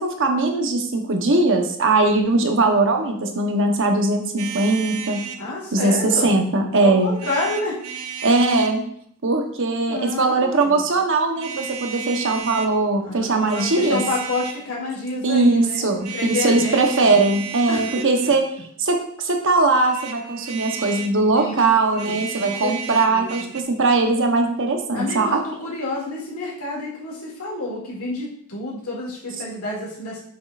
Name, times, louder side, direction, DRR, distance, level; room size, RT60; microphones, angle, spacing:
voice 1, 0.0-5.2 5.7-7.1 8.2-8.8 9.2-14.0 15.2-18.4 18.8-25.4, right 3 dB, 60° right, 3 dB, 1.0 m, -20 dB
sound 1, 4.4-5.4 7.1-8.8 10.3-10.7 11.4-12.7 13.3-14.7 16.0-18.5 19.8-21.2 21.9-23.6, right 7 dB, 80° right, 0.7 m, -34 dB
voice 2, 5.4-6.3 6.8-7.8 9.8-10.8 13.0-17.1 17.7-18.3 21.4-22.8 23.0-23.5 24.9-30.2, left 2 dB, 80° left, -4 dB, 2.5 m, -29 dB
7.5 x 6.2 x 2.5 m, 0.65 s
head